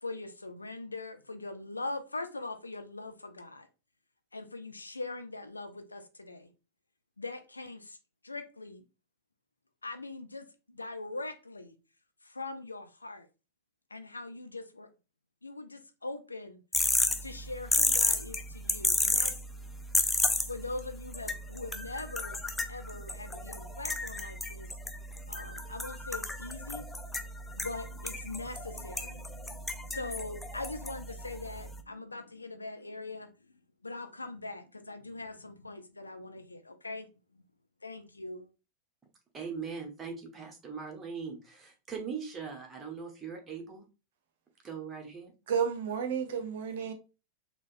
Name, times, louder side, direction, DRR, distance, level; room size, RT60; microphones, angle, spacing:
voice 1, 0.0-3.7 4.3-6.5 7.2-8.0 8.2-8.8 9.8-11.7 12.2-13.3 13.9-14.9 15.4-16.6 17.2-19.3 20.5-22.4 22.7-24.7 25.3-27.2 27.6-33.3 33.8-37.1 37.3-37.4 37.8-38.5, left 2 dB, 80° left, 0.4 m, -41 dB
sound 1, 16.7-31.8, left 2 dB, 10° left, 0.4 m, -33 dB
voice 2, 39.3-43.8 44.6-45.3, right 6 dB, 20° right, 1.1 m, -40 dB
voice 3, 45.5-46.9, right 7 dB, 55° right, 0.6 m, -31 dB
4.1 x 3.0 x 2.5 m
figure-of-eight pair, 90°, 0 cm